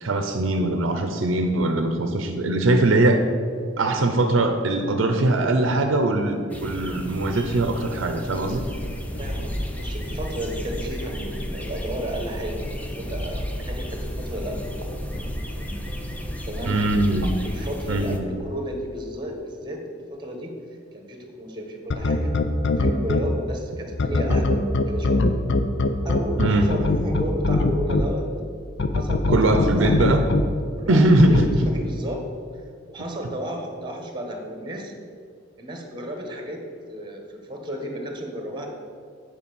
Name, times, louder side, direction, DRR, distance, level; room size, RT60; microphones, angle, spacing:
voice 1, 0.0-3.3 3.8-8.6 16.7-17.3 17.9-18.2 26.4-26.7 29.3-30.3 30.9-31.6, right 2 dB, 75° right, 6 dB, 0.7 m, -21 dB
sound 1, 6.5-18.2, equal, 10° left, 0.7 m, -36 dB
sound 2, 8.7-18.8, equal, 85° left, 2.0 m, -34 dB
voice 2, 9.2-14.9 16.4-16.8 17.4-20.5 20.9-22.3 22.8-25.2 26.0-28.3 28.9-30.1 30.8-31.4 31.6-32.2 32.9-34.9 35.6-38.7, equal, 25° right, 2 dB, 1.4 m, -33 dB
sound 3, 21.9-23.2 24.0-28.0 28.8-30.4 31.2-31.4, left 3 dB, 65° left, 0.6 m, -21 dB
8.5 x 5.0 x 7.1 m, 2.2 s
head